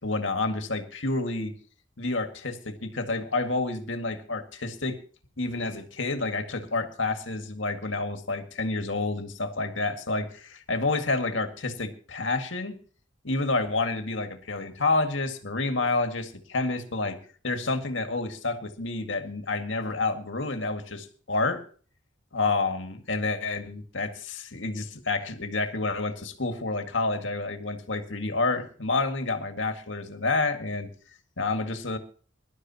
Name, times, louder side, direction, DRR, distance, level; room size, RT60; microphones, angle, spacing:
voice 1, 0.0-1.5 2.0-5.0 5.4-12.8 13.2-17.2 17.4-21.6 22.3-30.9 31.4-32.0, left 3 dB, 75° left, 6 dB, 2.0 m, -29 dB
23.0 x 12.0 x 3.0 m, 0.41 s
head